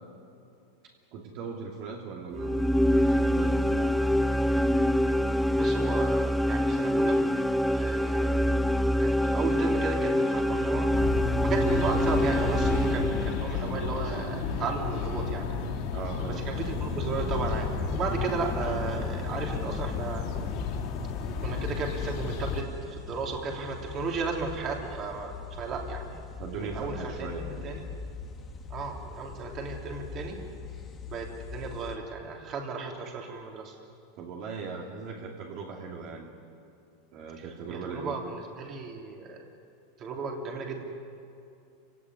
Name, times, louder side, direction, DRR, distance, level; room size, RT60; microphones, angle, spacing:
voice 1, 1.1-2.7 3.0-4.0 15.9-16.5 26.4-27.5 34.2-36.4 37.1-38.2, right 5 dB, 40° right, -1 dB, 2.8 m, -39 dB
sound 1, 2.3-13.7, equal, ahead, 0.5 m, -25 dB
voice 2, 5.5-7.2 7.7-8.5 9.0-10.9 11.4-15.5 16.3-20.2 21.4-26.2 26.6-27.9 28.7-30.4 31.1-33.8 37.4-39.4 40.0-40.8, right 4 dB, 25° right, 1 dB, 3.2 m, -35 dB
sound 2, 10.9-22.6, left 5 dB, 40° left, 3.8 m, -32 dB
sound 3, 16.5-32.0, left 4 dB, 15° left, 1.8 m, -39 dB
29.0 x 17.0 x 9.9 m, 2.6 s
supercardioid pair, 165°, 0 cm